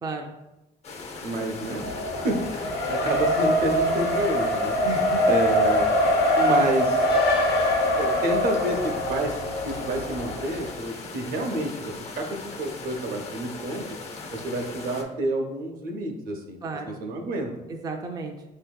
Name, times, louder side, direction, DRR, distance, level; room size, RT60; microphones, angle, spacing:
voice 1, 0.0-0.3 4.8-5.4 16.6-17.0 17.7-18.4, right 3 dB, 20° right, 2 dB, 0.4 m, -33 dB
sound 1, 0.8-15.0, left 3 dB, 40° left, 0.5 m, -39 dB
voice 2, 1.2-4.8 5.3-5.9 6.4-7.1 8.0-13.8 14.3-16.6 17.0-17.5, right 2 dB, 60° right, 2 dB, 0.7 m, -29 dB
Race car auto racing, 1.6-10.7, left 1 dB, 70° left, 0.8 m, -24 dB
5.2 x 2.6 x 2.2 m, 0.97 s
cardioid pair, 110°, 17 cm